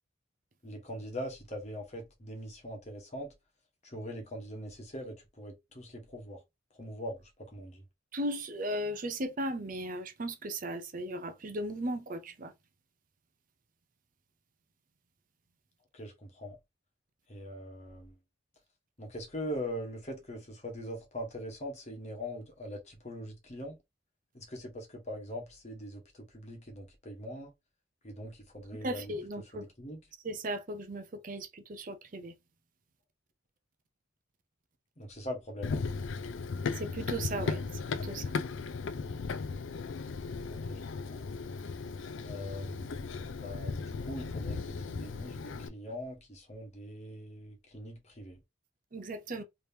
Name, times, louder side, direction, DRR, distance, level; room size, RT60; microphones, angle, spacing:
voice 1, 0.6-3.3 3.8-6.4 6.8-7.8 15.9-16.6 17.3-18.1 19.0-23.8 24.3-27.5 28.0-29.1 29.5-30.0 35.0-35.8 40.5-40.8 41.1-41.2 42.2-43.1 43.4-48.4, equal, 35° left, 1.2 m, -42 dB
voice 2, 8.1-12.5 28.7-29.6 30.2-32.3 36.7-38.3 48.9-49.4, right 1 dB, 40° right, 0.5 m, -37 dB
Run, 35.6-45.7, left 4 dB, 65° left, 0.4 m, -36 dB
3.4 x 3.0 x 2.8 m
head